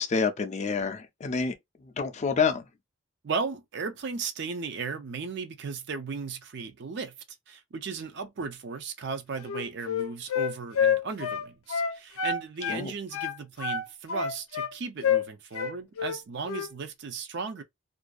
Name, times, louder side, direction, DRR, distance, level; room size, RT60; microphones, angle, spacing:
voice 1, 0.0-1.6 1.8-2.7 12.7-12.9, left 5 dB, 30° left, 0.3 m, -28 dB
voice 2, 3.2-7.1 7.5-17.6, right 5 dB, 55° right, 0.4 m, -36 dB
Wind instrument woodwind instrument, 9.4-12.8 13.1-14.7 15.0-15.3 15.5-16.2 16.5-16.7, left 7 dB, 80° left, 0.5 m, -28 dB
2.5 x 2.3 x 2.3 m
head